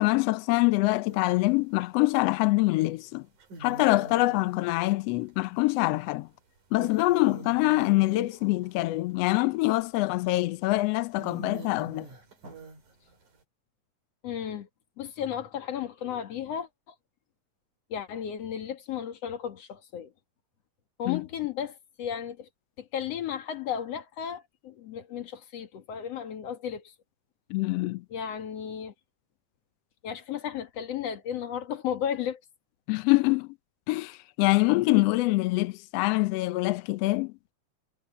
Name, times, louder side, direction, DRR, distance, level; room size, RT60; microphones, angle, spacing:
voice 1, 0.0-3.2 3.6-6.3 6.7-12.1 21.1-21.2 27.5-28.0 32.9-33.5 33.9-37.3, left 20 dB, 80° left, 1.4 m, -25 dB
sound 1, 1.1-1.6 2.8-2.9 3.4-6.2 6.6-9.5 10.2-10.4 10.8-10.9 11.2-13.4, right 2 dB, 85° right, 6.3 m, -45 dB
voice 2, 14.2-14.7 15.0-16.9 17.9-20.1 21.0-22.5 22.8-26.9 28.1-28.9 30.0-32.4, left 9 dB, 60° left, 2.7 m, -34 dB
omnidirectional pair, 3.4 m